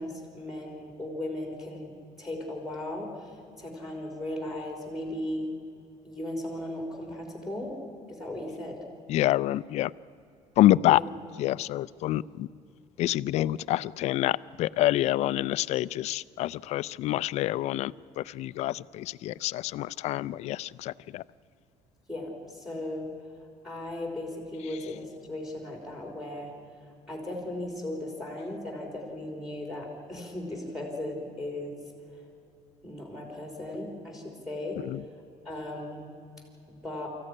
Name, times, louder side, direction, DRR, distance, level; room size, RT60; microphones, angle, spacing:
voice 1, 0.0-1.9 2.2-5.5 6.0-7.7 8.1-8.8 10.9-11.0 22.1-23.1 23.6-26.5 27.1-31.7 32.1-32.2 32.8-34.8 35.5-36.1 36.7-37.1, left 1 dB, 5° right, 2 dB, 3.7 m, -37 dB
voice 2, 9.1-9.9 10.6-11.0 11.4-12.5 13.0-17.9 18.3-21.2 34.8-35.0, left 15 dB, 60° left, 18 dB, 0.5 m, -27 dB
24.5 x 14.5 x 10.0 m, 2.7 s
cardioid pair, 155°, 13 cm